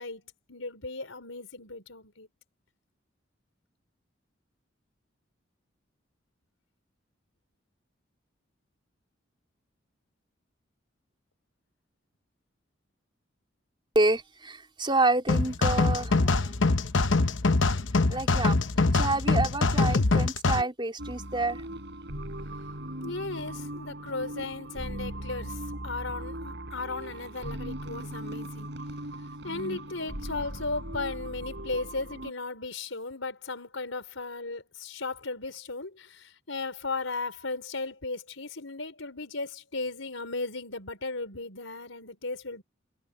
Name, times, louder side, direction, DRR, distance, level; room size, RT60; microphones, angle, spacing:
voice 1, 0.0-2.3 23.0-28.7 29.4-42.6, left 3 dB, 90° left, 4.7 m, -36 dB
voice 2, 14.0-16.7 17.4-17.5 18.1-18.6 18.9-21.6, right 2 dB, 25° right, 3.8 m, -28 dB
sound 1, 15.3-20.6, left 3 dB, 70° left, 1.0 m, -24 dB
sound 2, 21.0-32.3, right 1 dB, 60° right, 5.1 m, -39 dB
head